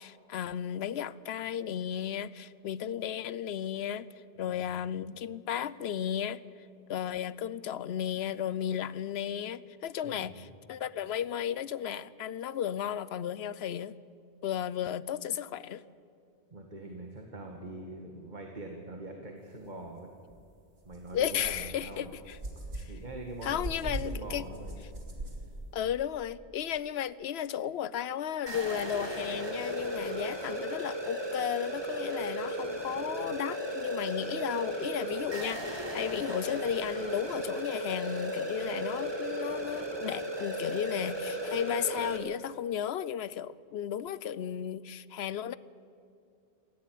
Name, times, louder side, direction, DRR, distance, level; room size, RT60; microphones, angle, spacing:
voice 1, 0.0-4.1 4.4-6.4 6.9-14.0 14.4-15.8 21.1-22.4 22.7-22.9 23.4-24.4 25.7-45.6, left 9 dB, 75° left, 0.9 m, -34 dB
voice 2, 4.4-4.7 10.0-10.4 16.5-20.1 20.9-22.1 22.6-24.8 25.1-25.5, right 2 dB, 45° right, 1.9 m, -44 dB
sound 1, 20.3-20.4 20.9-25.9, right 1 dB, 65° right, 2.9 m, -41 dB
sound 2, 28.5-42.2, right 1 dB, 25° right, 2.0 m, -35 dB
19.0 x 15.0 x 9.2 m
omnidirectional pair, 1.1 m